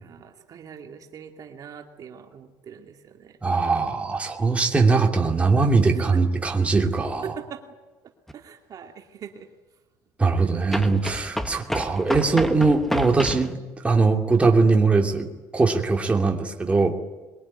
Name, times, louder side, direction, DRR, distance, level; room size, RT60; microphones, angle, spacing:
voice 1, 0.0-3.4 5.8-6.2 7.2-7.6 8.3-9.5 10.4-10.9, right 7 dB, 45° right, 3 dB, 2.4 m, -41 dB
voice 2, 3.4-7.3 10.2-17.0, right 3 dB, 15° right, 1 dB, 2.8 m, -21 dB
sound 1, 8.3-8.4 10.7-13.5, equal, 5° left, 1.3 m, -30 dB
23.0 x 22.5 x 9.9 m, 1.2 s
cardioid pair, 135°, 9 cm